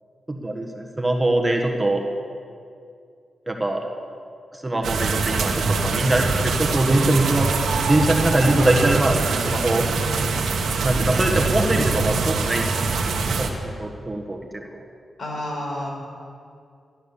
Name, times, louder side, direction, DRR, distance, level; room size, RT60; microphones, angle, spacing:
voice 1, 0.3-2.0 3.5-3.8 4.5-7.5 7.9-9.9 10.8-12.7 13.2-14.6, right 1 dB, 15° right, 1 dB, 1.6 m, -22 dB
sound 1, 4.8-13.5, right 4 dB, 90° right, 1.3 m, -23 dB
voice 2, 15.2-15.9, left 1 dB, 65° left, -2 dB, 4.9 m, -29 dB
13.5 x 11.5 x 7.0 m, 2.3 s
cardioid pair, 80°, 0 cm